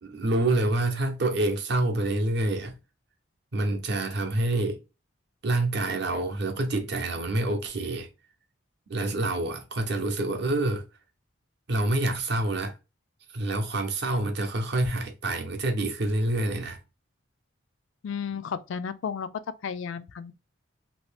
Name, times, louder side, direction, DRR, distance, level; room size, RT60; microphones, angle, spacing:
voice 1, 0.0-2.7 3.5-4.8 5.4-8.1 8.9-10.8 11.7-12.7 13.3-16.8, right 2 dB, 55° right, 0.6 m, -27 dB
voice 2, 18.0-19.3 19.6-20.3, left 6 dB, 70° left, 0.3 m, -33 dB
2.7 x 2.7 x 3.3 m
head